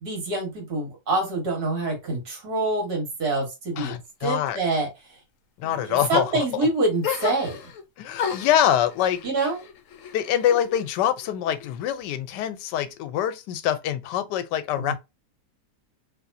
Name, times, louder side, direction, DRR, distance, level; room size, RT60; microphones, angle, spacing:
voice 1, 0.0-3.9 4.2-4.9 5.6-7.6 9.2-9.6 14.8-14.9, right 2 dB, 65° right, 2.1 m, -26 dB
voice 2, 3.8-4.6 5.6-6.7 8.0-9.2 10.1-14.9, left 10 dB, 90° left, 1.2 m, -25 dB
sound 1, 7.0-7.8 8.2-10.9 11.2-12.0, left 7 dB, 65° left, 0.8 m, -34 dB
3.4 x 3.0 x 2.5 m
omnidirectional pair, 1.8 m